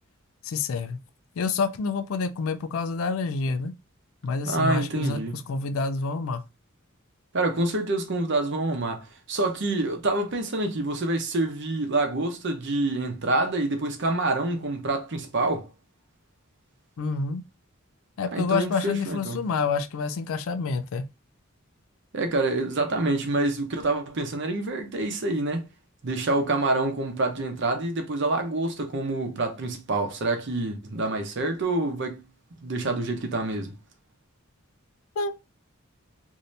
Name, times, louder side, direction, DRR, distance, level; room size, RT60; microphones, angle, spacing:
voice 1, 0.4-1.0 1.4-3.7 4.2-6.4 17.0-17.4 18.2-21.0 35.2-35.4, left 4 dB, 75° left, 0.4 m, -28 dB
voice 2, 4.5-5.4 7.3-15.7 18.3-19.5 22.1-25.7 26.0-32.2 32.6-33.8, right 2 dB, 60° right, 0.7 m, -27 dB
2.7 x 2.7 x 3.1 m
head